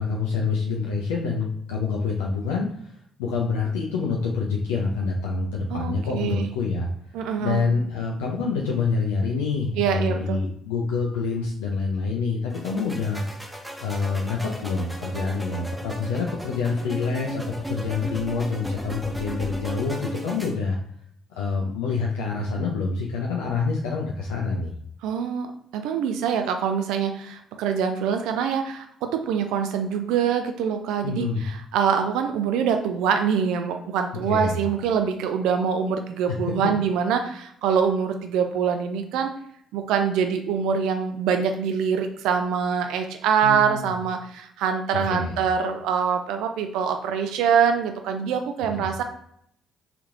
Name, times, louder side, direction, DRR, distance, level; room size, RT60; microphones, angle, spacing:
voice 1, 0.0-2.7 3.2-6.9 7.4-13.2 13.8-20.8 21.3-24.7 31.0-31.4 34.1-34.6 43.4-43.9 44.9-45.4 48.8-48.9, left 4 dB, 75° left, -2 dB, 0.4 m, -26 dB
voice 2, 5.7-6.5 7.1-7.6 9.8-10.4 25.0-39.3 39.7-49.0, right 7 dB, 65° right, 6 dB, 0.3 m, -24 dB
sound 1, 12.5-20.5, right 1 dB, 10° right, 0.8 m, -36 dB
3.3 x 3.0 x 2.5 m, 0.70 s
figure-of-eight pair, 45°, 0 cm